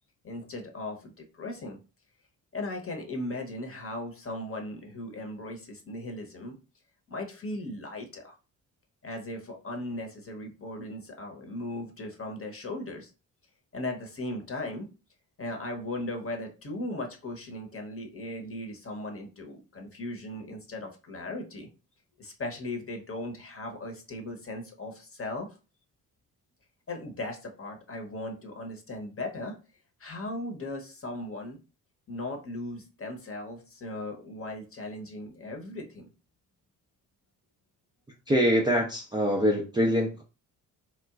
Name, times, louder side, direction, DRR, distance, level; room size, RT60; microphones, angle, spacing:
voice 1, 0.2-1.8 2.5-6.6 7.1-8.4 9.0-13.1 13.7-14.9 15.4-21.7 22.2-25.5 26.9-29.6 30.0-31.6 32.1-36.1, left 1 dB, 30° left, 3 dB, 0.9 m, -37 dB
voice 2, 38.3-40.2, equal, 10° right, -2 dB, 0.5 m, -24 dB
2.9 x 2.2 x 2.4 m, 0.32 s
hypercardioid pair, 40°, 47 cm